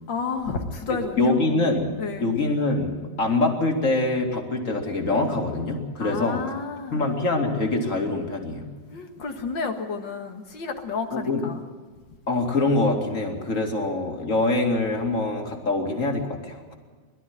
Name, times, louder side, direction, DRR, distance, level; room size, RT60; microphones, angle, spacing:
voice 1, 0.1-1.6 2.0-2.3 6.0-7.0 8.9-11.6, left 4 dB, 90° left, 4 dB, 2.5 m, -31 dB
voice 2, 1.2-1.9 2.2-6.4 6.9-8.6 11.1-11.4 12.3-16.7, left 2 dB, 45° left, 2 dB, 2.9 m, -24 dB
21.5 x 12.5 x 9.6 m, 1.5 s
omnidirectional pair, 1.9 m